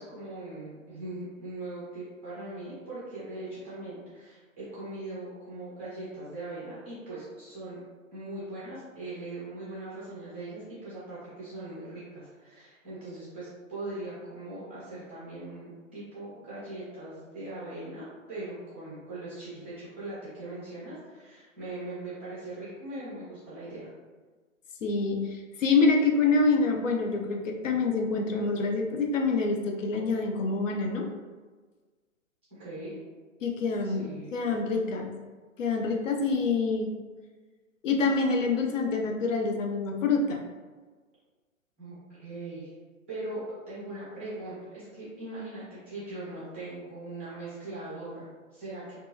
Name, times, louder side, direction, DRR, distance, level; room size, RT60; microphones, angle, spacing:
voice 1, 0.0-7.8 8.1-23.9 32.5-33.0 33.8-34.4 41.8-42.7 43.1-49.0, right 2 dB, 10° right, -10 dB, 0.3 m, -40 dB
voice 2, 24.8-31.1 33.4-35.2 35.6-36.9 37.8-40.4, left 4 dB, 65° left, 2 dB, 0.6 m, -26 dB
2.6 x 2.3 x 2.7 m, 1.4 s
figure-of-eight pair, 125°, 41 cm